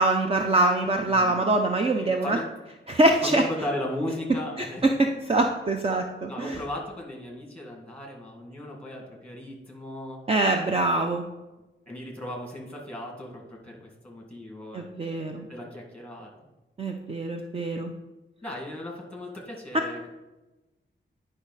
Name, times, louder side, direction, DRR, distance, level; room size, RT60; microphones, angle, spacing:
voice 1, 0.0-2.4 2.9-3.4 4.6-6.6 10.3-11.2 14.7-15.4 16.8-17.9, right 2 dB, 30° right, 3 dB, 0.5 m, -24 dB
voice 2, 1.1-1.5 1.9-2.5 3.2-5.0 6.3-10.2 10.7-11.1 11.9-14.9 15.5-16.3 18.4-20.1, left 1 dB, 5° left, -1 dB, 1.9 m, -36 dB
9.9 x 5.4 x 4.1 m, 1.1 s
wide cardioid pair, 160°, 20 cm